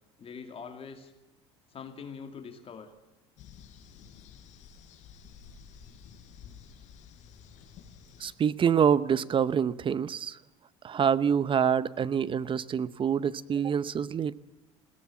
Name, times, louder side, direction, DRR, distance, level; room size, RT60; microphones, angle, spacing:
voice 1, 0.2-1.1 1.7-2.9, left 6 dB, 40° left, 5 dB, 2.5 m, -43 dB
sound 1, 3.4-8.3, left 7 dB, 55° left, 4.9 m, -51 dB
voice 2, 8.2-10.4 10.8-14.3, right 7 dB, 35° right, 17 dB, 0.9 m, -26 dB
21.0 x 17.0 x 7.2 m, 0.99 s
supercardioid pair, 85°, 15 cm